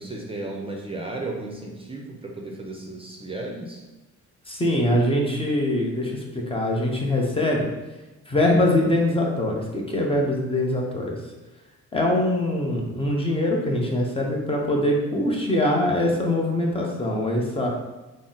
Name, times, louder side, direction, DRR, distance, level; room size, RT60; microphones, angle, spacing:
voice 1, 0.0-3.8, right 2 dB, 20° right, -1 dB, 0.6 m, -34 dB
voice 2, 4.5-7.7 8.3-11.2 11.9-17.7, left 1 dB, 20° left, -1 dB, 0.8 m, -23 dB
3.7 x 2.1 x 3.9 m, 1.1 s
cardioid pair, 90°, 30 cm